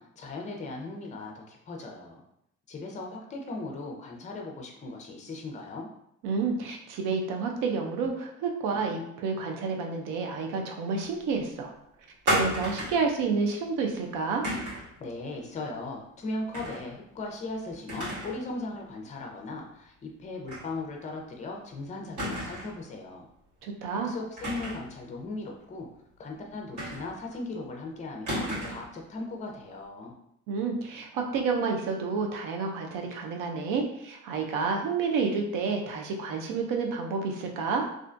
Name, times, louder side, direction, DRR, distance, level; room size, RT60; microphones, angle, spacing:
voice 1, 0.0-2.2 2.7-5.9 15.0-23.3 24.1-25.9 26.2-30.1, left 2 dB, 25° left, 1 dB, 0.5 m, -38 dB
voice 2, 6.2-11.7 12.3-14.5 23.6-24.1 30.5-37.9, right 4 dB, 90° right, 2 dB, 0.5 m, -29 dB
sound 1, 12.3-13.1 14.4-14.9 16.5-16.9 17.2-17.3 17.9-18.4 18.8-18.9 20.5-20.7 21.0-21.1 22.2-22.8 24.4-24.9 26.8-27.3 28.3-28.9, right 1 dB, 65° right, 1.4 m, -32 dB
2.4 x 2.1 x 2.5 m, 0.77 s
cardioid pair, 100°, 31 cm